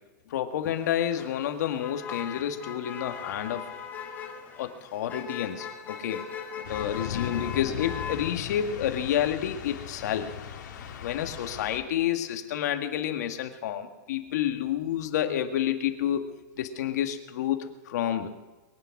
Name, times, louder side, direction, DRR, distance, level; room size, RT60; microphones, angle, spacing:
voice 1, 0.3-3.6 4.6-6.2 6.6-10.3 11.0-16.3 16.6-18.3, left 10 dB, 65° left, 6 dB, 1.8 m, -29 dB
Motor vehicle (road), 0.6-11.1, left 7 dB, 20° left, 2.1 m, -41 dB
sound 1, 6.6-11.8, left 8 dB, 85° left, 2.8 m, -38 dB
22.5 x 9.1 x 6.0 m, 1.2 s
supercardioid pair, 165°, 10 cm